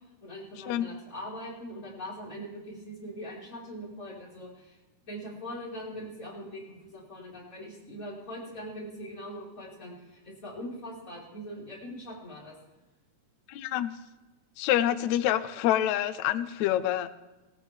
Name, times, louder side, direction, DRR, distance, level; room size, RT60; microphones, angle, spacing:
voice 1, 0.2-4.8 5.0-12.5, equal, 25° left, -5 dB, 5.0 m, -41 dB
voice 2, 13.5-13.9 14.6-17.1, left 12 dB, 75° left, 12 dB, 1.8 m, -27 dB
18.5 x 17.0 x 3.5 m, 1.1 s
omnidirectional pair, 3.7 m